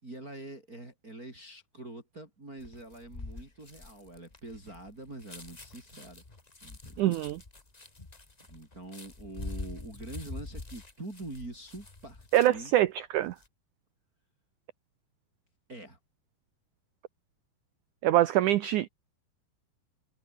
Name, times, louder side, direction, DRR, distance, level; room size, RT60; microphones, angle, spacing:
voice 1, 0.0-6.2 6.6-7.1 8.5-12.7 15.7-16.0, right 2 dB, 20° right, 5.5 m, -45 dB
sound 1, 2.6-12.8 13.2-13.5, left 2 dB, 55° left, 0.4 m, -45 dB
voice 2, 7.0-7.4 12.3-13.3 18.0-18.9, right 13 dB, 85° right, 1.7 m, -24 dB
omnidirectional pair, 4.6 m